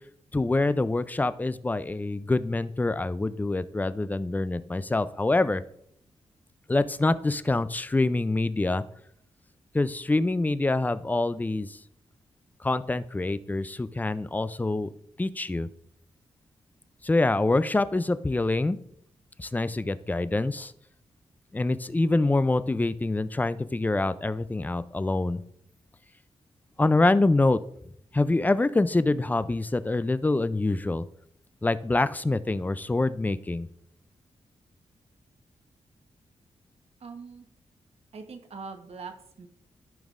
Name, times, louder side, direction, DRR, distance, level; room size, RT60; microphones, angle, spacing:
voice 1, 0.3-5.6 6.7-8.8 9.7-11.8 12.6-14.9 15.2-15.7 17.0-18.8 19.4-20.7 21.5-25.4 26.8-27.6 28.1-31.1 31.6-33.7, left 2 dB, 15° left, 14 dB, 0.4 m, -25 dB
voice 2, 37.0-37.5 38.1-39.5, right 4 dB, 60° right, 6 dB, 1.1 m, -42 dB
14.0 x 5.3 x 2.5 m, 0.71 s
wide cardioid pair, 110°, 12 cm